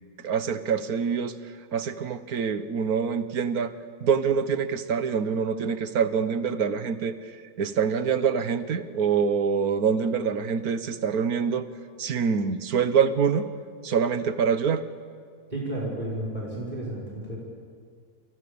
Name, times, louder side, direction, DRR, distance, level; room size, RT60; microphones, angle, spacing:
voice 1, 0.2-1.4 1.7-3.7 4.0-7.1 7.6-11.6 12.0-13.5 13.8-14.9, right 6 dB, 75° right, 11 dB, 1.7 m, -25 dB
voice 2, 15.5-17.4, right 1 dB, 30° right, -5 dB, 6.0 m, -32 dB
28.5 x 28.5 x 7.1 m, 2.1 s
omnidirectional pair, 1.6 m